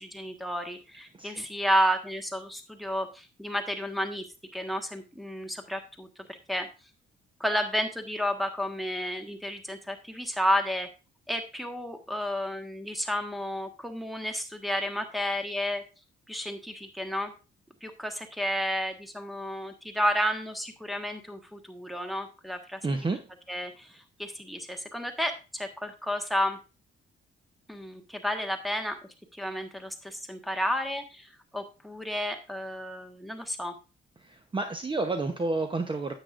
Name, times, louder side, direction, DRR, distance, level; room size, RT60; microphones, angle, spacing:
voice 1, 0.0-4.2 4.5-6.7 7.4-10.9 11.3-15.8 16.3-17.3 17.8-22.8 23.5-23.9 24.2-26.6 27.7-29.0 29.3-33.7, equal, ahead, 5 dB, 1.4 m, -31 dB
voice 2, 22.8-23.2 34.2-36.1, right 3 dB, 25° right, 7 dB, 0.9 m, -30 dB
9.5 x 8.2 x 2.5 m, 0.31 s
cardioid pair, 90°, 20 cm